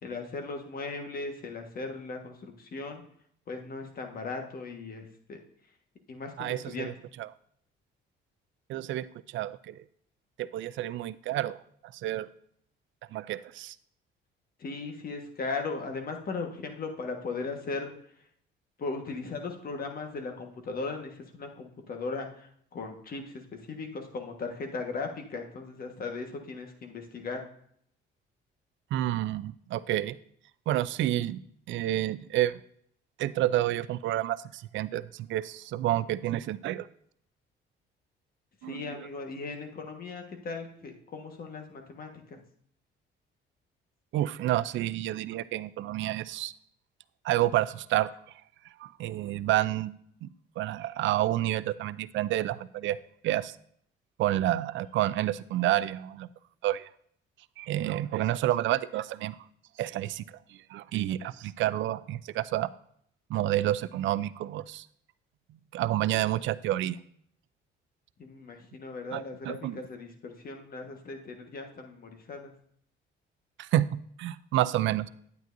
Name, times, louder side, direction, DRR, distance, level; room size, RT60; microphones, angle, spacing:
voice 1, 0.0-3.0 3.5-5.4 6.1-6.9 14.6-17.9 18.8-27.4 38.6-42.4 68.2-72.5, left 3 dB, 45° left, 4 dB, 1.4 m, -38 dB
voice 2, 6.4-6.9 7.2-7.3 8.7-9.1 9.3-9.8 10.4-11.6 11.9-12.3 13.1-13.7 28.9-30.2 30.7-31.4 31.7-32.6 33.2-36.9 38.6-39.1 44.1-46.5 47.2-48.1 48.8-49.9 50.2-50.3 50.6-53.0 53.2-53.5 54.2-56.3 56.6-56.9 57.6-59.4 59.8-60.2 60.7-62.7 63.3-64.9 65.7-67.0 69.1-69.8 73.6-73.9 74.2-75.1, right 14 dB, 70° right, 16 dB, 0.4 m, -29 dB
9.2 x 9.1 x 2.6 m, 0.66 s
cardioid pair, 100°, 21 cm